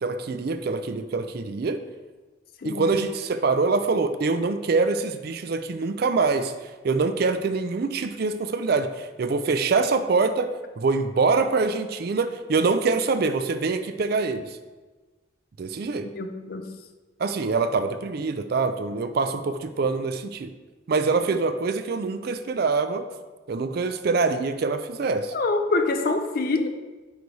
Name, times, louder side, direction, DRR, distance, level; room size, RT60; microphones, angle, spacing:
voice 1, 0.0-1.8 2.6-10.5 10.8-14.5 15.6-16.1 17.2-20.5 20.9-23.1 23.5-25.3, right 4 dB, 50° right, 9 dB, 0.4 m, -24 dB
voice 2, 2.6-3.0 16.0-16.7 25.3-26.7, left 3 dB, 45° left, 7 dB, 0.5 m, -25 dB
9.0 x 3.3 x 4.0 m, 1.3 s
head